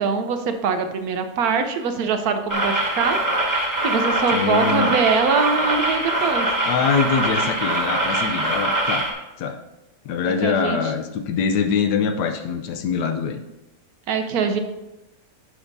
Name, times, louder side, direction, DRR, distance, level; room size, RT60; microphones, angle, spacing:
voice 1, 0.0-3.4 3.8-6.5 10.4-10.9 14.1-14.6, right 5 dB, 70° right, 7 dB, 1.2 m, -23 dB
sound 1, 2.5-9.1, right 1 dB, 10° right, 1.4 m, -23 dB
voice 2, 4.3-4.9 6.7-9.1 9.4-9.6 10.0-13.4, left 6 dB, 90° left, 6 dB, 1.3 m, -23 dB
11.5 x 6.0 x 2.7 m, 0.96 s
omnidirectional pair, 1.7 m